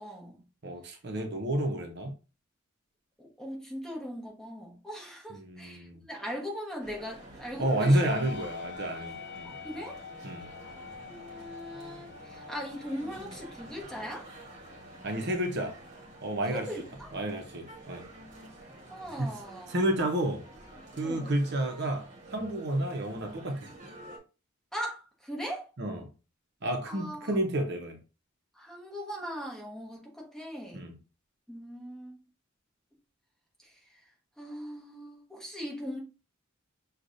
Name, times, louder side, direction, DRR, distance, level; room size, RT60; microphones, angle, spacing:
voice 1, 0.0-0.4 3.2-8.1 9.4-10.0 11.1-14.3 16.5-17.1 18.9-19.7 21.0-21.3 24.7-25.7 26.9-27.3 28.5-30.9 31.5-32.2 33.6-33.8 34.4-36.0, equal, 5° left, 1.2 m, -40 dB
voice 2, 0.6-2.1 5.3-6.0 7.6-9.5 10.2-10.5 15.0-15.8 16.2-16.7 17.1-18.0 19.2-19.3 19.7-20.4 20.9-23.7 25.8-26.1 26.6-28.0 30.7-30.9, right 1 dB, 55° right, 0.8 m, -30 dB
Male speech man speaking, 6.8-24.2, right 2 dB, 35° right, 1.3 m, -49 dB
sound 1, 7.8-21.4, left 6 dB, 55° left, 0.4 m, -48 dB
6.3 x 2.4 x 2.6 m
head